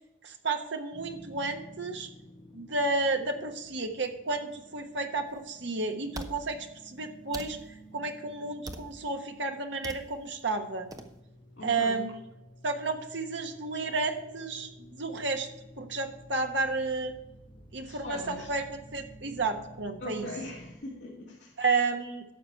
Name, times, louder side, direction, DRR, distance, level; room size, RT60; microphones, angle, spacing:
voice 1, 0.2-2.1 2.5-10.9 11.6-12.2 12.6-14.7 15.0-15.5 15.8-17.1 17.7-20.3 21.6-22.2, right 3 dB, 70° right, 5 dB, 1.2 m, -32 dB
sound 1, 0.9-20.8, equal, 30° left, 1.3 m, -52 dB
sound 2, 5.3-5.4 6.1-6.4 7.3-7.5 8.7-9.0 9.8-10.0 10.9-11.1, right 2 dB, 20° right, 0.7 m, -39 dB
voice 2, 11.6-12.1 17.8-18.5 20.0-21.5, left 2 dB, 65° left, -5 dB, 2.3 m, -40 dB
11.5 x 7.0 x 4.6 m, 0.92 s
head